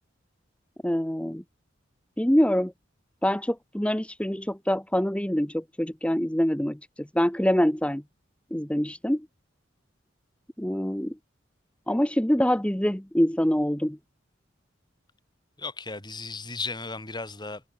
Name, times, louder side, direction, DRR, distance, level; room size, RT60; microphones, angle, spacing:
voice 1, 0.8-1.4 2.2-2.7 3.2-8.0 8.5-9.3 10.6-11.1 11.9-14.0, equal, 5° left, 1.1 m, -25 dB
voice 2, 15.6-17.6, left 3 dB, 25° left, 4.4 m, -35 dB
head